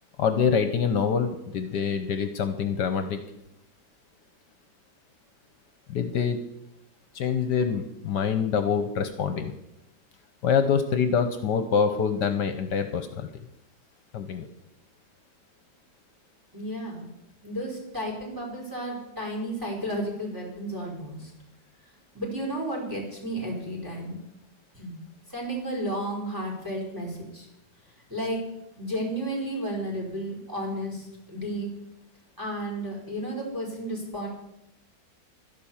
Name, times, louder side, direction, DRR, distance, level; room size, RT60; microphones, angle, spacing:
voice 1, 0.2-3.2 5.9-6.4 7.1-9.5 10.4-13.3 14.1-14.5, left 6 dB, 70° left, 9 dB, 1.5 m, -25 dB
voice 2, 16.5-17.1 17.4-21.3 22.1-24.2 24.7-25.0 25.3-27.5 28.1-28.4 28.8-31.7 32.4-34.3, right 1 dB, 10° right, -1 dB, 4.9 m, -32 dB
12.0 x 11.0 x 7.2 m, 0.84 s
omnidirectional pair, 1.9 m